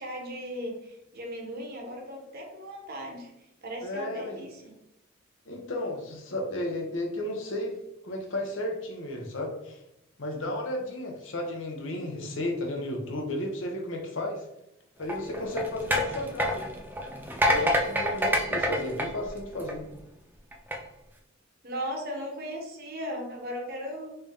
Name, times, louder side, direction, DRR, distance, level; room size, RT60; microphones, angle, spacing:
voice 1, 0.0-3.3 3.6-4.8 21.6-24.1, equal, 50° right, 1 dB, 0.9 m, -37 dB
voice 2, 3.8-4.4 5.5-7.7 8.0-9.8 10.2-14.4 15.0-16.7 17.5-19.8, left 1 dB, 70° left, 1 dB, 0.8 m, -33 dB
sound 1, 15.0-20.0 20.5-20.8, equal, 10° right, 0.4 m, -27 dB
3.3 x 2.7 x 3.5 m, 0.85 s
head